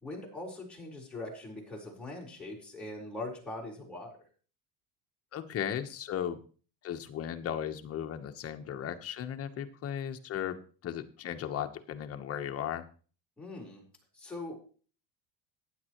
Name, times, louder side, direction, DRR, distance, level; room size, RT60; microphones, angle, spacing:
voice 1, 0.0-4.1 13.4-13.8 14.1-14.6, left 2 dB, 5° left, -3 dB, 4.3 m, -41 dB
voice 2, 5.3-6.4 6.8-12.8, left 9 dB, 35° left, 7 dB, 1.1 m, -36 dB
15.0 x 10.0 x 3.1 m, 0.40 s
cardioid pair, 145°, 39 cm